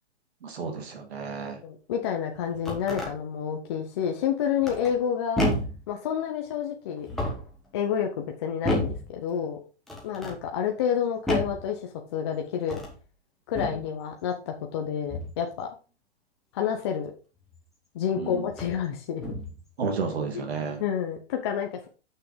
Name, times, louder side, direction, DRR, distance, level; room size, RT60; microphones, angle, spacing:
voice 1, 0.4-1.6 18.1-18.5 19.8-20.8, right 5 dB, 70° right, 4 dB, 2.3 m, -32 dB
voice 2, 1.6-5.4 5.9-7.1 7.7-9.6 10.0-12.8 13.5-15.7 16.5-17.1 17.9-19.3 20.3-20.5 20.8-21.9, left 8 dB, 25° left, 2 dB, 0.7 m, -29 dB
sound 1, 2.4-3.1 4.6-5.0 5.4-5.9 7.0-7.6 8.6-9.1 9.9-10.4 11.3-11.7 12.6-13.0 13.5-13.9 15.1-15.4 17.5-17.6 18.5-18.8 19.2-19.6, left 1 dB, ahead, 1.2 m, -30 dB
6.5 x 5.9 x 5.1 m, 0.34 s
hypercardioid pair, 170°, 33 cm